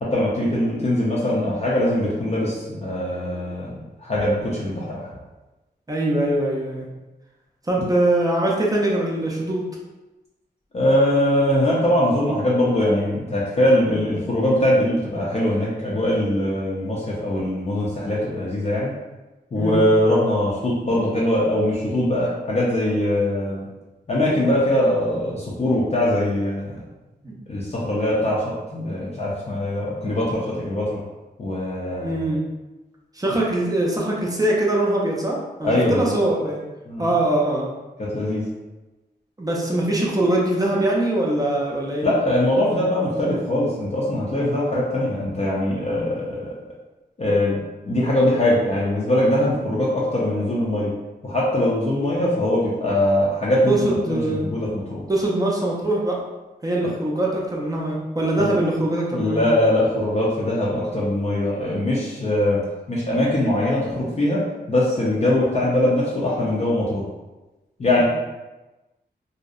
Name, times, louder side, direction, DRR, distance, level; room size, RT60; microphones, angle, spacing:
voice 1, 0.0-5.1 10.7-18.9 19.5-23.7 24.1-26.8 27.5-31.0 31.4-32.2 35.6-36.2 36.9-37.1 38.0-38.4 42.0-46.5 47.2-47.6 47.8-50.9 51.2-55.0 58.4-58.5 59.1-62.6 62.9-67.0 67.8-68.0, left 1 dB, 40° left, -6 dB, 0.4 m, -22 dB
voice 2, 5.9-6.9 7.6-9.6 19.5-19.8 27.2-27.4 32.0-32.4 33.1-36.6 37.0-37.7 39.4-42.1 53.7-54.4 55.1-56.2 56.6-59.4, right 1 dB, 20° right, -3 dB, 0.4 m, -22 dB
2.6 x 2.0 x 2.3 m, 1.1 s
wide cardioid pair, 120°, 18 cm